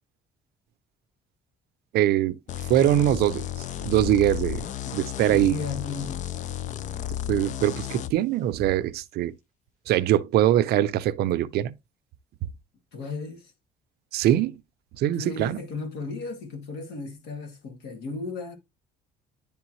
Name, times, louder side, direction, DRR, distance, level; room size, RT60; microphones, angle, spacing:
voice 1, 1.9-2.4 2.7-3.5 3.8-4.7 4.9-5.6 7.3-9.3 9.9-11.7 14.1-14.6 15.0-15.6, right 12 dB, 70° right, 0.5 m, -22 dB
sound 1, 2.5-8.1, left 12 dB, 45° left, 0.4 m, -33 dB
voice 2, 4.8-6.3 12.9-13.5 15.1-18.6, left 4 dB, 85° left, 2.0 m, -35 dB
10.5 x 3.5 x 3.0 m
cardioid pair, 110°, 17 cm